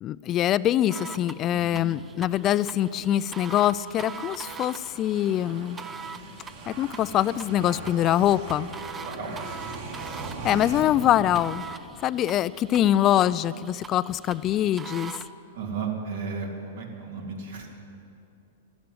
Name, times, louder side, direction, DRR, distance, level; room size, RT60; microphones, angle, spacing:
voice 1, 0.0-5.8 6.7-8.7 10.4-11.6 12.0-15.1, left 12 dB, 30° left, 17 dB, 0.3 m, -24 dB
sound 1, 0.9-15.3, right 6 dB, 20° right, 0.6 m, -43 dB
voice 2, 1.5-1.8 9.0-9.3 15.5-17.7, right 5 dB, 75° right, 1 dB, 2.9 m, -34 dB
sound 2, 2.7-12.1, right 3 dB, 60° right, 3.1 m, -41 dB
11.5 x 11.5 x 9.6 m, 2.7 s
hypercardioid pair, 130°, 0 cm